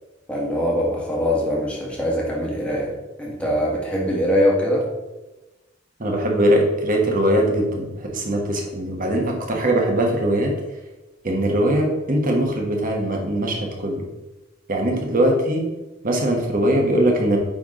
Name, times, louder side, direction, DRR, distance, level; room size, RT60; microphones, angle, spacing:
voice 1, 0.3-2.9 3.2-4.8, equal, 5° left, -4 dB, 1.6 m, -22 dB
voice 2, 6.0-10.5 11.2-14.1 14.7-15.7 16.0-17.4, right 1 dB, 45° right, 1 dB, 1.2 m, -21 dB
9.0 x 3.5 x 3.7 m, 1.1 s
head